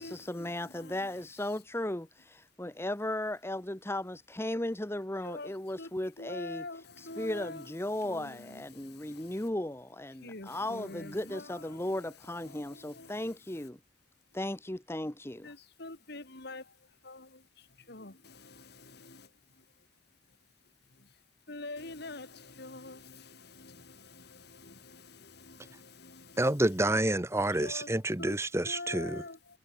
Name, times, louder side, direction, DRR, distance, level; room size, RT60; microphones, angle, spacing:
voice 1, 0.0-13.8 14.3-15.5, left 1 dB, 15° left, 1.1 m, -36 dB
voice 2, 6.2-7.6 8.1-8.3 10.2-11.4 12.9-13.1 15.4-16.6 17.0-17.3 17.9-19.2 21.5-26.4 27.6-27.9 28.2-28.3 28.7-29.4, left 2 dB, 60° left, 2.8 m, -44 dB
voice 3, 26.4-29.3, right 1 dB, 15° right, 1.2 m, -28 dB
head